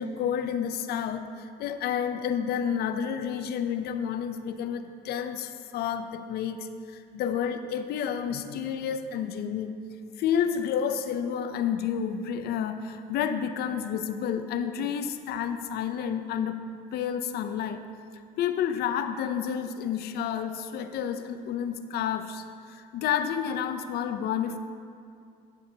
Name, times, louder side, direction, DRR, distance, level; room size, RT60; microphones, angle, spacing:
voice 1, 0.0-9.8 10.2-16.6 16.9-17.8 18.4-24.6, left 8 dB, 70° left, 9 dB, 0.5 m, -30 dB
10.5 x 8.0 x 2.8 m, 2.3 s
cardioid pair, 110°, 17 cm